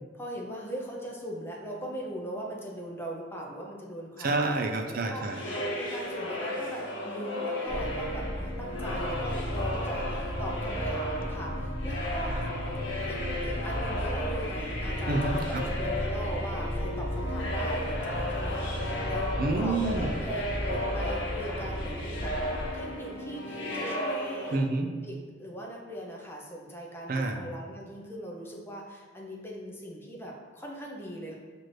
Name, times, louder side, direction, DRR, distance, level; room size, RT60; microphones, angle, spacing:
voice 1, 0.2-4.4 5.1-5.3 5.5-12.4 13.1-19.3 19.6-22.3 22.7-24.6 25.1-31.3, right 1 dB, 15° left, -2 dB, 0.5 m, -40 dB
voice 2, 4.2-5.4 12.3-12.5 15.1-15.7 19.4-20.1 24.5-24.9 27.1-27.4, right 2 dB, 50° right, 5 dB, 0.4 m, -28 dB
sound 1, 5.2-24.6, left 1 dB, 80° left, 0.8 m, -34 dB
sound 2, 7.7-22.7, equal, 55° left, 1.0 m, -35 dB
5.9 x 2.5 x 3.1 m, 1.5 s
head